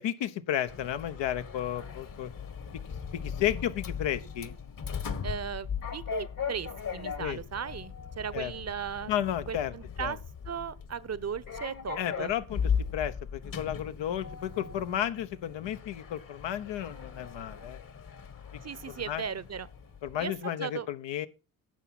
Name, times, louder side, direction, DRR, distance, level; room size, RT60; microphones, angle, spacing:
voice 1, 0.0-2.3 3.1-4.5 7.2-7.4 8.3-8.5 9.1-9.7 10.0-10.1 12.0-12.6 12.9-17.8 19.1-19.2 20.0-21.3, left 11 dB, 65° left, 1.2 m, -32 dB
Sliding door, 0.7-20.3, left 7 dB, 45° left, 1.7 m, -38 dB
voice 2, 5.2-9.1 9.5-10.2 10.4-12.3 18.6-19.7 20.2-20.9, right 7 dB, 35° right, 1.0 m, -37 dB
11.0 x 7.0 x 6.1 m
supercardioid pair, 60°, 47 cm